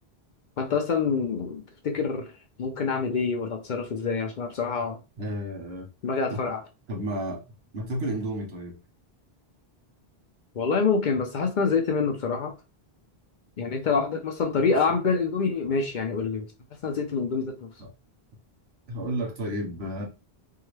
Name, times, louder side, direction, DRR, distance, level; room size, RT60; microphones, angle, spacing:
voice 1, 0.6-2.3 2.6-5.0 6.0-6.6 10.5-12.5 13.6-16.5 16.8-17.7, left 5 dB, 55° left, 0.6 m, -26 dB
voice 2, 5.2-5.9 6.3-6.4 6.9-7.4 7.7-8.8 14.6-14.7 17.8-17.9 18.9-20.0, right 1 dB, 80° right, 1.2 m, -32 dB
2.8 x 2.3 x 3.1 m
omnidirectional pair, 1.0 m